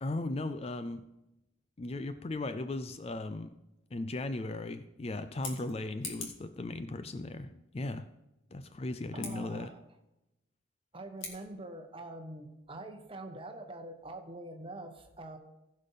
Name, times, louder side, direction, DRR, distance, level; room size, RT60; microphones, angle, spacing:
voice 1, 0.0-1.0 1.8-3.5 3.9-8.1 8.5-9.7, left 2 dB, 30° left, 11 dB, 0.4 m, -37 dB
Scissors, 5.2-6.5 9.1-9.3 11.1-11.4, left 4 dB, 70° left, 2.2 m, -43 dB
voice 2, 9.1-9.8 10.9-15.4, right 2 dB, 25° right, 5 dB, 1.0 m, -44 dB
15.5 x 5.4 x 5.5 m, 0.92 s
head